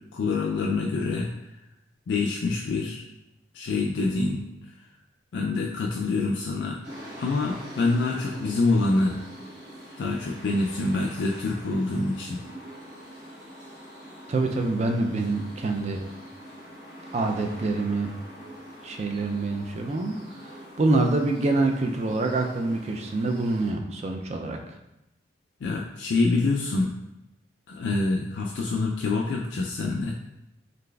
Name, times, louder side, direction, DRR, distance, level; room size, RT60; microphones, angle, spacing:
voice 1, 0.1-1.3 2.1-3.0 3.5-4.4 5.3-6.8 7.2-9.2 10.0-12.4 25.6-26.9 27.7-30.1, left 3 dB, 85° left, -1 dB, 0.3 m, -26 dB
sound 1, 6.8-23.7, equal, 90° right, 1.2 m, -44 dB
voice 2, 14.3-16.0 17.1-18.1 18.8-24.6, right 2 dB, 40° right, 3 dB, 0.4 m, -26 dB
3.9 x 3.2 x 2.3 m, 0.88 s
head